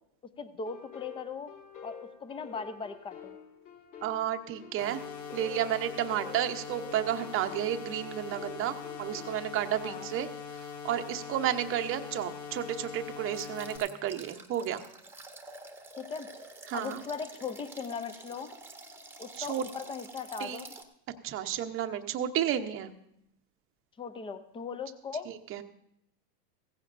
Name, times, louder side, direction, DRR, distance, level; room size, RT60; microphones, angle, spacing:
voice 1, 0.4-1.5 1.8-3.4 9.8-10.1 16.0-16.3 16.7-18.5 19.2-20.7 24.0-25.3, left 5 dB, 10° left, 12 dB, 0.5 m, -39 dB
sound 1, 0.7-9.4, left 6 dB, 55° left, 4.6 m, -48 dB
voice 2, 4.0-5.0 5.3-10.3 10.5-14.8 16.7-17.0 19.3-19.7 20.4-20.6 21.2-22.9 25.5-25.6, right 11 dB, 25° right, 7 dB, 0.8 m, -32 dB
sound 2, 4.8-13.8, left 7 dB, 35° left, 2.1 m, -42 dB
sound 3, 13.3-20.8, right 2 dB, 5° right, 1.0 m, -48 dB
16.0 x 15.5 x 2.6 m, 0.77 s
hypercardioid pair, 120°, 49 cm